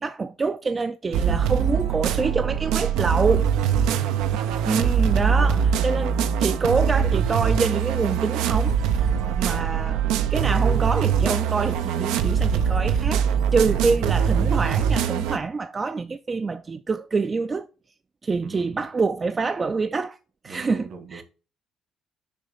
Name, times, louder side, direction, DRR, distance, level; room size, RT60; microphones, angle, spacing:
voice 1, 0.0-3.5 4.7-9.1 9.4-10.1 10.3-17.7 18.2-20.2 20.4-21.2, right 4 dB, 35° right, 0.4 m, -26 dB
sound 1, 1.1-15.4, right 7 dB, 85° right, 0.5 m, -22 dB
voice 2, 3.7-4.3 5.1-6.1 9.1-9.5 13.7-13.8 18.4-18.7 20.5-21.2, right 5 dB, 65° right, 1.6 m, -40 dB
6.7 x 3.0 x 5.5 m
supercardioid pair, 75°, 0 cm